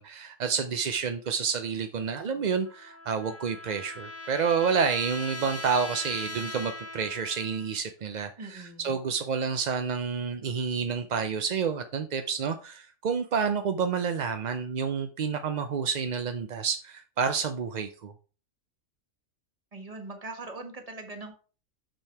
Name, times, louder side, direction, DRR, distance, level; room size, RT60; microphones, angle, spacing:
voice 1, 0.0-18.1, right 6 dB, 50° right, 0.5 m, -29 dB
Trumpet, 2.6-7.8, left 1 dB, 15° left, 0.5 m, -40 dB
voice 2, 8.4-9.0 19.7-21.4, right 2 dB, 30° right, 1.5 m, -41 dB
6.6 x 6.2 x 4.5 m
omnidirectional pair, 1.3 m